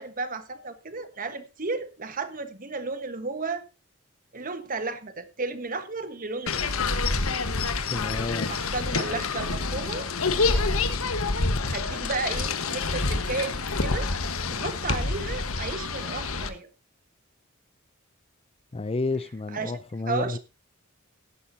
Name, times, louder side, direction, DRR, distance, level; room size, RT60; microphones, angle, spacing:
voice 1, 0.0-3.6 4.3-6.7 8.5-10.1 11.7-14.1 14.5-16.7 19.5-19.8 20.1-20.4, right 3 dB, 40° right, 1.4 m, -33 dB
sound 1, 6.5-16.5, left 3 dB, 85° left, 1.4 m, -27 dB
voice 2, 7.9-8.5 18.7-20.4, left 3 dB, 30° left, 0.5 m, -30 dB
16.0 x 11.0 x 2.8 m
head